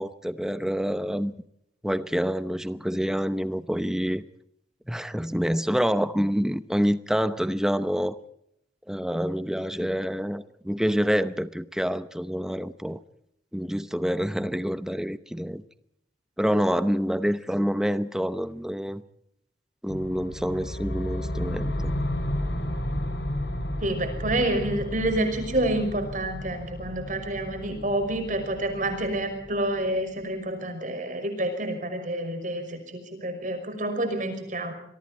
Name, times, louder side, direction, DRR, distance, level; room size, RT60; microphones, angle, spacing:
voice 1, 0.0-1.3 1.8-4.2 4.9-8.2 8.9-13.0 13.5-15.6 16.4-19.0 19.8-21.9, equal, 5° right, 12 dB, 0.9 m, -27 dB
sound 1, 19.9-30.0, left 1 dB, 80° left, 4.3 m, -32 dB
voice 2, 23.8-34.7, right 1 dB, 45° right, 6 dB, 5.8 m, -28 dB
26.5 x 22.5 x 4.4 m, 0.76 s
head